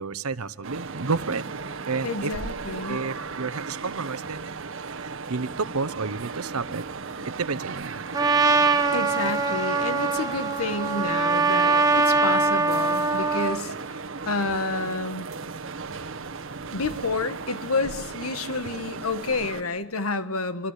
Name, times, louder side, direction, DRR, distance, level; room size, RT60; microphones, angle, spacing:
voice 1, 0.0-1.4 1.9-2.3 2.9-4.5 4.9-6.9 7.4-8.0 15.6-16.3 16.9-17.0, right 4 dB, 90° right, 15 dB, 1.0 m, -31 dB
sound 1, 0.6-19.6, right 4 dB, 60° right, 1.2 m, -36 dB
voice 2, 2.0-3.0 8.9-13.7 14.3-15.3 16.7-20.7, left 3 dB, 75° left, 11 dB, 1.6 m, -29 dB
Trumpet, 8.1-13.6, right 3 dB, 15° right, 1.4 m, -22 dB
26.5 x 26.0 x 8.4 m, 1.1 s
head